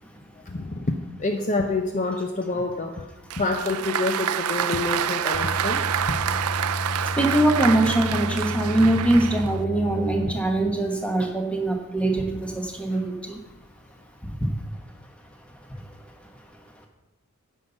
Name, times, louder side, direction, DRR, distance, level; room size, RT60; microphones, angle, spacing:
voice 1, 0.4-3.1 3.4-5.8 6.1-6.2 12.9-13.0, left 3 dB, 35° left, 4 dB, 0.6 m, -27 dB
Applause, 3.3-9.6, right 9 dB, 80° right, 0.5 m, -27 dB
sound 1, 5.3-10.2, left 2 dB, 35° right, 1.5 m, -32 dB
voice 2, 7.1-13.4 14.2-14.5 15.5-16.5 16.7-16.8, right 1 dB, 5° left, 3 dB, 1.1 m, -23 dB
9.8 x 5.6 x 8.0 m, 1.0 s
head